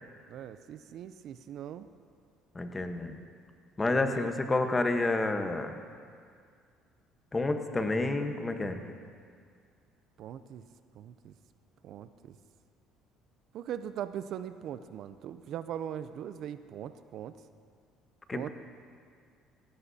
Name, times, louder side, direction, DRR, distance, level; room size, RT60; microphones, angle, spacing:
voice 1, 0.3-1.9 3.8-4.3 10.2-10.6 10.9-11.3 11.8-12.4 13.5-17.3 18.3-18.5, right 10 dB, 65° right, 12 dB, 0.5 m, -40 dB
voice 2, 2.5-3.2 3.8-5.8 7.3-8.8 18.3-18.5, left 2 dB, 20° left, 6 dB, 1.1 m, -29 dB
17.5 x 15.5 x 2.8 m, 2.1 s
cardioid pair, 100°, 0 cm